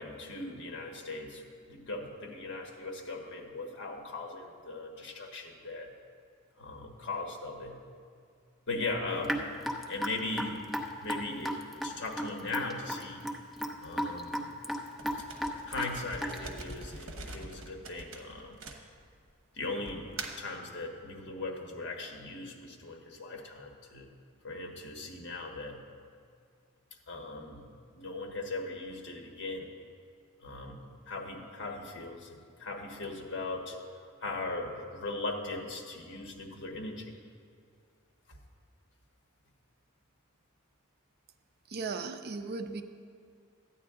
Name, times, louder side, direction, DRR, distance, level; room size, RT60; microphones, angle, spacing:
voice 1, 0.0-1.4 1.7-5.9 6.6-7.8 8.7-9.5 9.9-10.6 11.0-11.6 11.8-13.2 13.8-14.5 15.7-18.6 19.5-20.1 20.4-24.1 24.4-25.8 27.1-27.7 27.9-29.7 30.4-33.8 34.2-37.1 38.3-38.4, left 2 dB, 55° left, 2 dB, 1.3 m, -39 dB
Raindrop / Drip, 9.2-16.6, equal, ahead, 0.6 m, -35 dB
sound 1, 15.0-19.3 19.9-20.5, right 3 dB, 65° right, 1.0 m, -43 dB
voice 2, 41.7-42.8, right 4 dB, 50° right, 8 dB, 0.5 m, -36 dB
13.5 x 9.3 x 3.7 m, 2.2 s
head